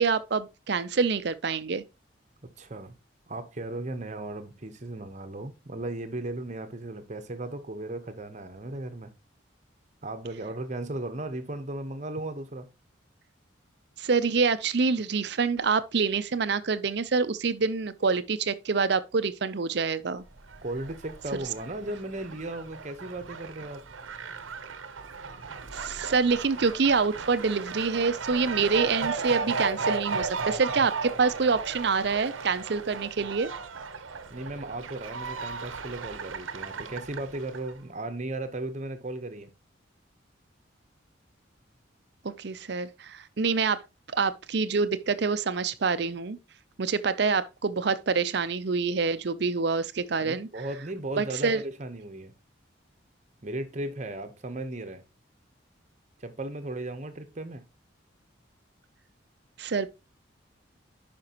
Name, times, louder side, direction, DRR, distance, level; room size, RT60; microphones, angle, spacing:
voice 1, 0.0-1.8 14.0-20.2 25.7-33.5 42.2-43.8 44.1-46.4 46.8-50.5 51.2-51.6 59.6-59.9, right 4 dB, 60° right, 0.6 m, -26 dB
voice 2, 2.6-2.9 3.3-9.1 10.0-12.7 20.6-23.9 34.3-39.5 50.2-52.3 53.4-55.0 56.2-57.6, right 2 dB, 35° right, 1.0 m, -36 dB
Fowl, 20.4-37.7, right 4 dB, 85° right, 0.8 m, -35 dB
10.5 x 5.2 x 2.9 m
head